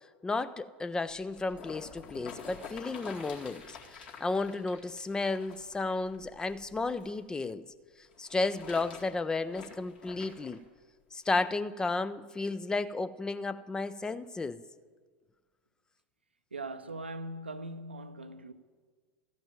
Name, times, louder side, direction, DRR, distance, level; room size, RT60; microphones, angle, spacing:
voice 1, 0.2-7.6 8.0-10.6 11.1-14.6, left 3 dB, 10° left, 0.4 m, -33 dB
sound 1, 1.1-7.2 8.0-10.6 11.2-11.3, left 6 dB, 55° left, 2.3 m, -48 dB
voice 2, 16.5-18.5, right 2 dB, 80° right, 0.6 m, -40 dB
14.0 x 5.3 x 9.1 m
figure-of-eight pair, 85°, 6 cm